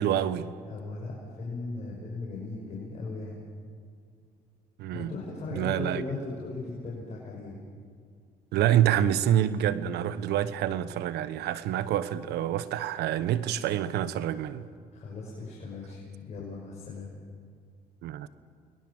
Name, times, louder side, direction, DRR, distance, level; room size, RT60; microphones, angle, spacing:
voice 1, 0.0-0.5 4.8-5.1 5.5-6.0 8.5-14.7 18.0-18.3, right 11 dB, 80° right, 1.2 m, -27 dB
voice 2, 0.7-3.4 4.9-7.6 14.9-17.1, left 3 dB, 40° left, 6.2 m, -38 dB
29.0 x 22.0 x 7.3 m
cardioid pair, 110°, 17 cm